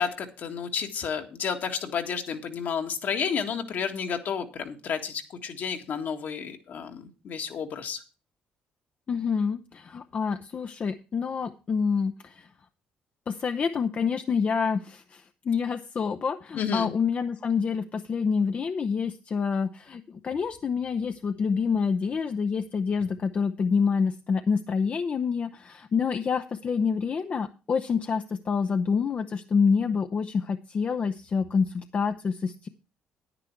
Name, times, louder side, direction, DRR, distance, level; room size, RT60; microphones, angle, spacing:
voice 1, 0.0-8.0 16.6-16.9, left 7 dB, 65° left, 5 dB, 1.8 m, -31 dB
voice 2, 9.1-12.5 13.3-32.7, left 5 dB, 40° left, 9 dB, 0.7 m, -27 dB
9.9 x 9.9 x 4.6 m, 0.34 s
cardioid pair, 90°, 3 cm